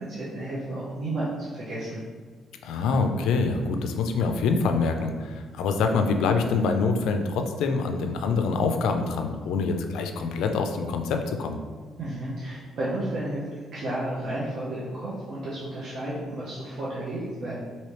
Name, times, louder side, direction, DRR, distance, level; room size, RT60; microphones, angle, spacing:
voice 1, 0.0-2.0 12.0-17.6, right 1 dB, 65° right, -8 dB, 0.7 m, -32 dB
voice 2, 2.6-11.6, left 4 dB, 85° left, 5 dB, 0.3 m, -25 dB
3.2 x 2.7 x 3.0 m, 1.5 s
cardioid pair, 90°, 0 cm